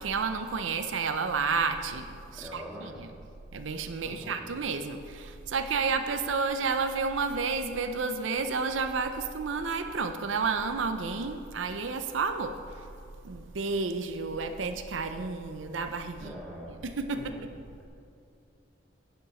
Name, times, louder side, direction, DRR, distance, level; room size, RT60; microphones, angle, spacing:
voice 1, 0.0-2.1 2.3-3.1 3.5-12.6 13.2-16.3 16.8-17.2, right 4 dB, 90° right, 8 dB, 0.6 m, -31 dB
voice 2, 2.3-2.9 4.1-4.4 16.2-16.7 17.1-17.4, equal, ahead, -6 dB, 1.9 m, -43 dB
10.5 x 8.1 x 4.2 m, 2.6 s
head